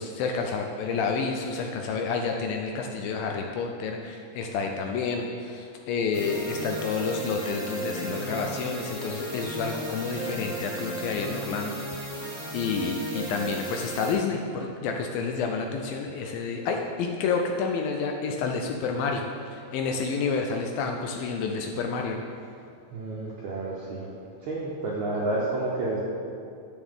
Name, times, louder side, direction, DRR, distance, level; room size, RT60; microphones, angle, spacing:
voice 1, 0.0-12.2 12.5-19.3 19.5-22.2, left 5 dB, 80° left, 3 dB, 2.2 m, -29 dB
sound 1, 6.1-14.1, right 1 dB, 10° right, 1.0 m, -35 dB
voice 2, 22.9-24.1 24.4-26.0, right 2 dB, 70° right, -4 dB, 1.8 m, -30 dB
11.0 x 8.0 x 3.6 m, 2.4 s
omnidirectional pair, 4.5 m